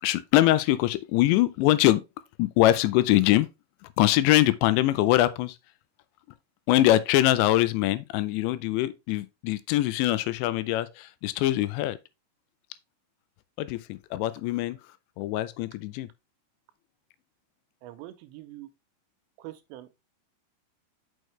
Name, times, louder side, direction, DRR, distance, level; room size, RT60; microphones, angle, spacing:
voice 1, 0.0-2.0 2.4-3.5 3.8-5.6 6.7-12.0 13.6-14.8 15.2-16.1, left 15 dB, 85° left, 2.8 m, -23 dB
voice 2, 17.8-18.7 19.4-19.9, right 15 dB, 85° right, 3.0 m, -43 dB
6.4 x 6.3 x 3.2 m
omnidirectional pair, 5.3 m